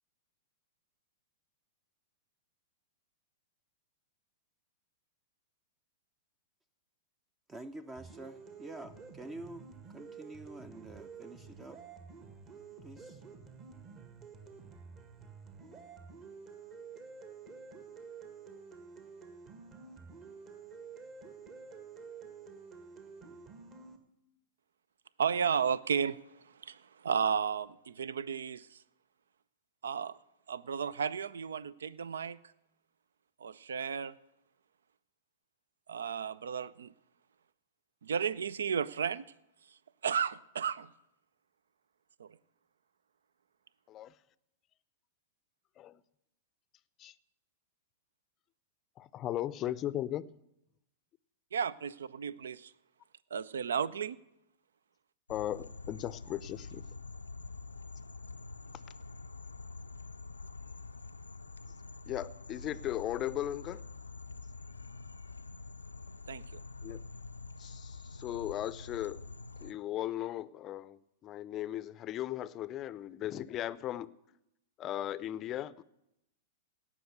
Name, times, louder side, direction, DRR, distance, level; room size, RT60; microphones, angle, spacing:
voice 1, 7.5-11.8 12.8-13.2, right 2 dB, 15° right, 0.6 m, -47 dB
sound 1, 8.0-24.0, right 5 dB, 35° right, 1.7 m, -50 dB
voice 2, 25.2-28.8 29.8-30.2 30.5-32.4 33.4-34.1 35.9-36.9 38.0-39.2 40.0-40.9 42.2-42.4 51.5-52.7 53.3-54.2 66.3-66.6, right 7 dB, 75° right, 0.4 m, -33 dB
voice 3, 49.0-50.4 55.3-56.9 62.1-63.8 66.8-67.0 67.6-69.2 69.6-74.1 74.8-75.8, left 13 dB, 35° left, 0.5 m, -37 dB
sound 2, 55.3-69.7, left 3 dB, 90° left, 0.4 m, -46 dB
17.0 x 6.1 x 7.9 m
figure-of-eight pair, 105°, 0 cm